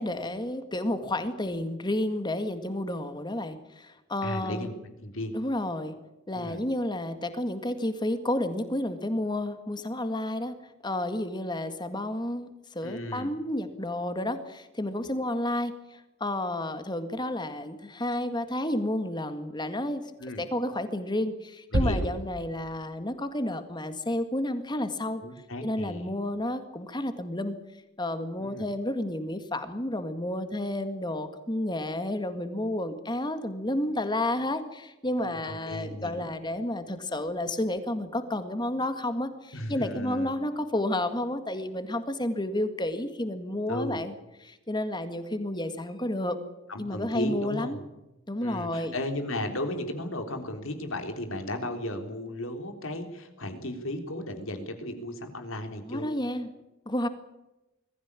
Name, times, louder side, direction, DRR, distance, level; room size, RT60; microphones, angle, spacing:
voice 1, 0.0-4.7 5.3-5.9 6.3-10.5 10.8-20.0 20.4-25.2 25.6-27.6 28.0-44.1 44.4-46.4 46.8-47.8 48.3-48.9 55.9-56.5 56.9-57.1, left 1 dB, 20° left, 9 dB, 1.9 m, -31 dB
voice 2, 4.2-5.3 6.3-6.6 12.8-13.3 20.2-20.4 21.7-22.1 25.2-26.1 28.4-28.7 35.2-36.3 39.5-40.3 43.7-44.0 46.7-47.8 48.4-56.1, left 1 dB, 70° left, 5 dB, 3.5 m, -35 dB
sound 1, 21.7-23.1, right 1 dB, 75° right, 1.4 m, -30 dB
22.0 x 15.0 x 9.8 m, 0.99 s
head